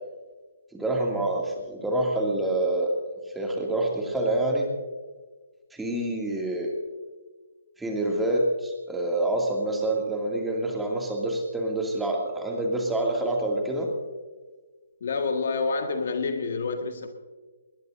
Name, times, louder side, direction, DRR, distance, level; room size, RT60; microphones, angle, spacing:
voice 1, 0.7-2.9 3.4-4.7 5.7-6.7 7.8-13.9, right 1 dB, 5° right, -1 dB, 2.4 m, -27 dB
voice 2, 15.0-17.1, left 4 dB, 50° left, 5 dB, 1.7 m, -28 dB
20.5 x 20.0 x 2.7 m, 1.4 s
figure-of-eight pair, 135°, 0 cm